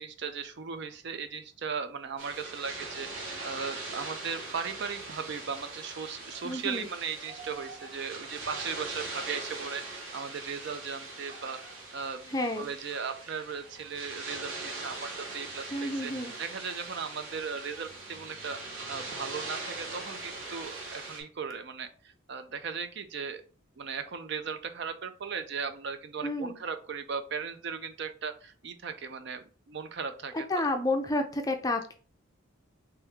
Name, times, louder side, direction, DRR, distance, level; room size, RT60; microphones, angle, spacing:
voice 1, 0.0-11.6 11.9-16.1 16.4-18.6 18.9-23.4 23.8-30.7, right 6 dB, 55° right, 9 dB, 0.4 m, -37 dB
sound 1, 2.2-21.2, right 2 dB, 70° right, 1.3 m, -41 dB
voice 2, 6.4-6.9 12.3-12.7 15.7-16.3 26.2-26.6 30.5-31.9, left 2 dB, 15° left, 4 dB, 0.4 m, -30 dB
3.3 x 3.0 x 3.5 m, 0.38 s
head